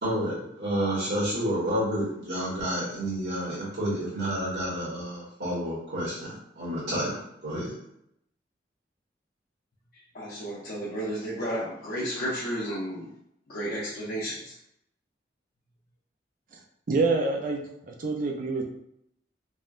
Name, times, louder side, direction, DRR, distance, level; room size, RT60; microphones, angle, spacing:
voice 1, 0.0-7.7, equal, 70° right, -8 dB, 1.4 m, -30 dB
voice 2, 10.1-13.1 13.5-14.5, equal, 55° left, -8 dB, 0.6 m, -32 dB
voice 3, 16.9-18.6, right 3 dB, 50° right, 2 dB, 0.4 m, -27 dB
3.5 x 2.1 x 2.5 m, 0.75 s
head